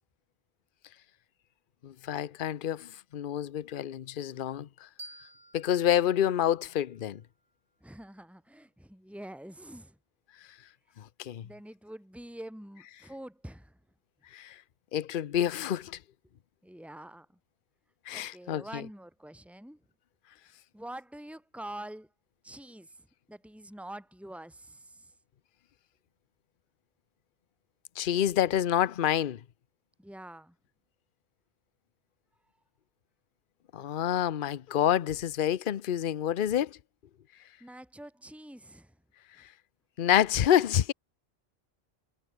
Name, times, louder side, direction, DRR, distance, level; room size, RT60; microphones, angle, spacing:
voice 1, 1.8-4.7 5.5-7.2 11.0-11.5 14.3-14.6 14.9-16.0 18.1-18.8 28.0-29.4 33.7-36.8 40.0-40.9, left 10 dB, 60° left, 0.8 m, -28 dB
sound 1, 5.0-7.8, right 1 dB, 50° right, 6.5 m, -52 dB
voice 2, 7.8-10.0 11.4-13.8 16.6-17.3 18.1-19.8 20.7-22.1 22.4-25.1 30.0-30.6 37.6-38.9, right 1 dB, ahead, 3.6 m, -46 dB
omnidirectional pair, 1.1 m